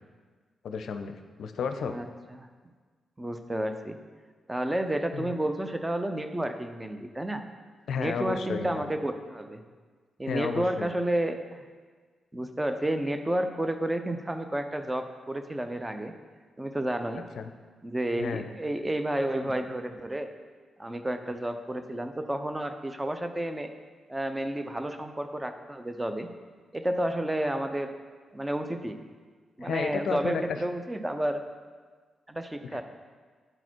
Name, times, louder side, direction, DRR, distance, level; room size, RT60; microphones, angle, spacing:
voice 1, 0.6-2.0 5.1-5.3 7.9-8.9 10.3-10.9 17.4-17.5 18.2-18.5 29.6-30.4 32.7-32.8, left 6 dB, 70° left, 8 dB, 0.5 m, -32 dB
voice 2, 3.2-4.0 4.5-7.4 7.9-9.6 10.2-11.6 12.3-16.1 16.6-17.2 17.8-20.3 20.8-23.7 24.1-26.3 26.7-27.9 28.3-29.0 29.6-31.4 32.3-32.8, right 1 dB, 15° right, 7 dB, 0.7 m, -31 dB
8.9 x 4.1 x 4.5 m, 1.5 s
hypercardioid pair, 40°, 0 cm